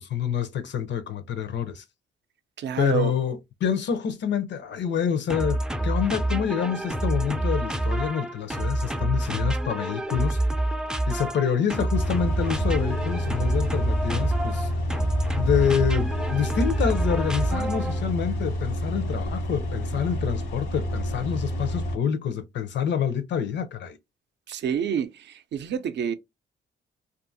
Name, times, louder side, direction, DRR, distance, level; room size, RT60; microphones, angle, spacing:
voice 1, 0.0-1.8 2.8-10.4 11.1-14.7 15.4-24.0, left 8 dB, 65° left, 0.5 m, -27 dB
voice 2, 2.6-3.2 24.5-26.1, right 8 dB, 60° right, 0.5 m, -28 dB
sound 1, 5.3-18.1, right 1 dB, 5° right, 0.3 m, -27 dB
sound 2, 11.9-21.9, equal, 90° left, 1.2 m, -29 dB
2.6 x 2.5 x 2.5 m
cardioid pair, 70°, 20 cm